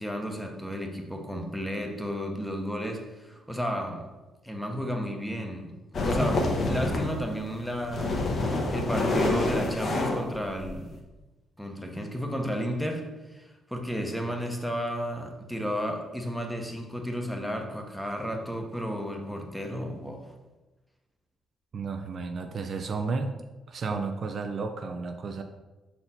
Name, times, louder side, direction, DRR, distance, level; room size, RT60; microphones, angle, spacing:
voice 1, 0.0-4.1 4.4-5.8 6.0-11.0 11.6-20.3 23.9-24.0, equal, ahead, 3 dB, 0.9 m, -33 dB
sound 1, 5.9-7.2 7.6-11.0, left 2 dB, 50° left, 1.1 m, -27 dB
voice 2, 21.7-23.3 23.7-25.4, right 4 dB, 50° right, 6 dB, 0.5 m, -32 dB
5.5 x 4.3 x 4.2 m, 1.1 s
cardioid pair, 90°, 0 cm